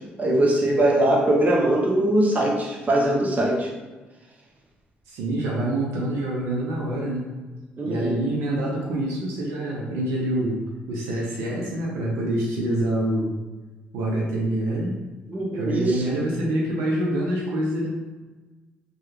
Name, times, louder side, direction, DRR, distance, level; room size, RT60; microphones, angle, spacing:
voice 1, 0.2-3.7 7.8-8.2 15.3-16.0, right 1 dB, 35° right, -2 dB, 0.9 m, -21 dB
voice 2, 5.1-7.3 7.8-10.6 10.9-13.3 13.9-15.0 15.5-17.9, right 1 dB, 85° right, -3 dB, 0.6 m, -26 dB
3.2 x 2.3 x 3.2 m, 1.2 s
supercardioid pair, 60°, 4 cm